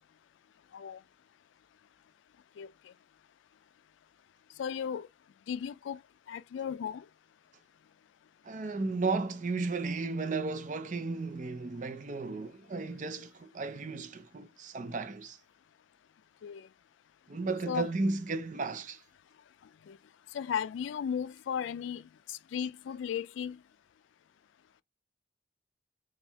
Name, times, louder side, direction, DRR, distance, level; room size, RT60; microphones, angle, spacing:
voice 1, 4.6-5.1 5.5-6.0 6.3-7.0 16.4-16.7 17.7-17.9 19.9-20.0 20.3-22.0 22.3-23.6, left 7 dB, 85° left, 0.3 m, -35 dB
voice 2, 8.4-15.4 17.3-19.0, right 3 dB, 40° right, 0.5 m, -34 dB
4.3 x 2.3 x 3.4 m
head